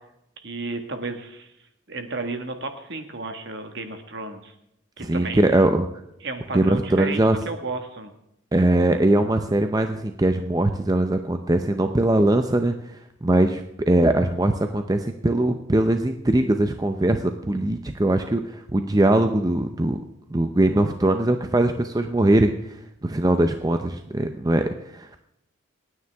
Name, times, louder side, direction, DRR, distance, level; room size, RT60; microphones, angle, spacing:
voice 1, 0.4-1.5 1.9-4.5 5.0-5.4 6.2-7.2 7.4-8.1, right 3 dB, 55° right, 6 dB, 1.6 m, -32 dB
voice 2, 5.0-5.9 6.5-7.4 8.5-20.0 20.3-22.5 23.0-25.1, right 1 dB, 20° right, 7 dB, 0.6 m, -21 dB
27.5 x 9.6 x 3.5 m, 0.79 s
head